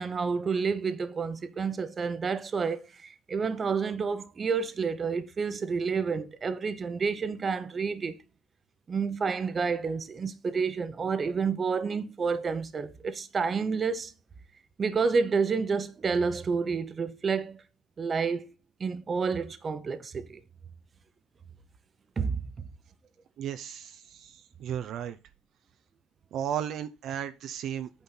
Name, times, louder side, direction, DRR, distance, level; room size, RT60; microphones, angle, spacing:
voice 1, 0.0-8.2 8.9-14.1 14.8-17.6 18.0-18.5 18.8-20.4 22.2-22.7, right 5 dB, 30° right, 0.9 m, -29 dB
voice 2, 23.4-25.2 26.3-27.9, right 9 dB, 60° right, 0.6 m, -34 dB
8.8 x 4.4 x 5.5 m
cardioid pair, 125°, 0 cm